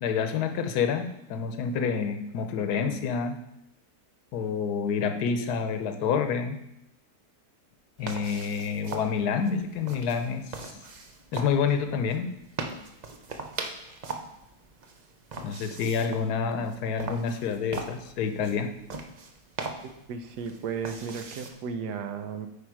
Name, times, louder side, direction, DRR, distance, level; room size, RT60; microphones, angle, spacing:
voice 1, 0.0-3.4 4.3-6.6 8.0-10.8 11.3-12.3 15.4-18.7, left 6 dB, 75° left, 7 dB, 1.3 m, -28 dB
sound 1, 8.0-21.5, right 3 dB, 60° right, 0.4 m, -41 dB
voice 2, 19.8-22.5, right 6 dB, 85° right, 8 dB, 1.4 m, -35 dB
8.8 x 5.0 x 4.7 m, 0.82 s
omnidirectional pair, 1.7 m